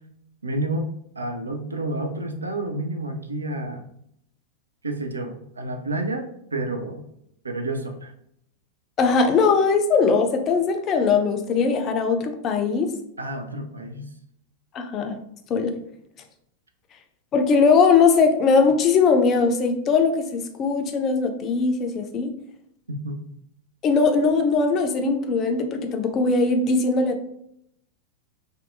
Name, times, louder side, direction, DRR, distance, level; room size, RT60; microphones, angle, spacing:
voice 1, 0.4-0.9 1.2-3.9 4.8-7.0 7.4-8.1 13.2-14.1 22.9-23.4, right 2 dB, 75° right, 5 dB, 0.3 m, -30 dB
voice 2, 9.0-12.9 14.7-15.2 15.5-15.7 17.3-22.3 23.8-27.3, left 4 dB, 30° left, 5 dB, 0.4 m, -20 dB
2.6 x 2.2 x 2.5 m, 0.73 s
figure-of-eight pair, 90°, 0 cm